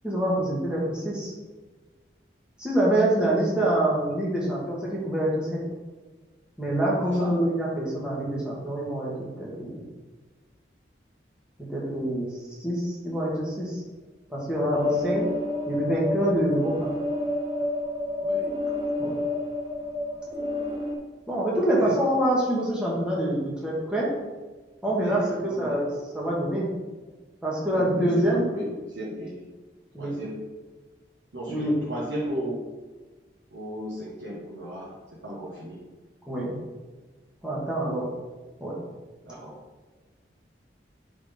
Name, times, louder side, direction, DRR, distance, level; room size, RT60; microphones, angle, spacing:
voice 1, 0.0-1.3 2.6-5.6 6.6-9.1 9.4-9.8 11.6-13.8 14.3-15.3 15.7-16.9 19.0-19.2 21.3-24.1 24.8-25.9 26.1-26.7 27.4-28.6 29.9-30.2 31.5-31.7 36.3-36.5 37.4-38.1 38.6-38.8, right 1 dB, 5° right, -6 dB, 1.5 m, -26 dB
sound 1, 14.7-21.0, left 2 dB, 25° right, 1.0 m, -29 dB
voice 2, 24.8-25.8 27.7-29.4 30.0-30.4 31.3-32.7 33.5-35.8 39.2-39.6, equal, 80° right, -5 dB, 1.3 m, -35 dB
9.3 x 4.0 x 3.6 m, 1.3 s
head